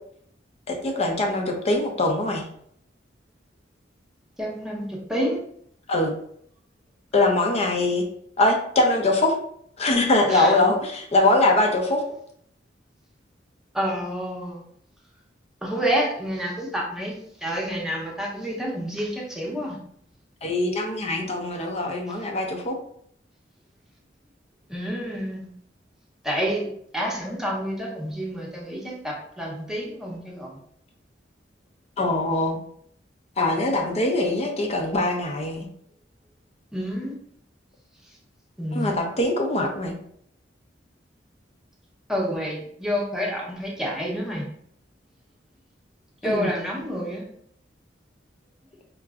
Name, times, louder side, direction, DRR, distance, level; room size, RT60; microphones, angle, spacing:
voice 1, 0.7-2.4 5.9-6.1 7.1-8.0 8.4-9.3 9.8-12.0 20.4-22.7 32.0-32.6 33.4-35.7 38.7-39.9 46.2-46.5, left 2 dB, 35° left, 3 dB, 0.6 m, -22 dB
voice 2, 4.4-5.4 10.3-10.6 13.7-14.6 15.6-19.8 24.7-25.5 26.2-26.7 26.9-30.6 36.7-37.2 38.6-39.0 42.1-44.4 46.2-47.2, equal, 5° right, -3 dB, 0.8 m, -29 dB
4.5 x 2.9 x 2.4 m, 0.67 s
head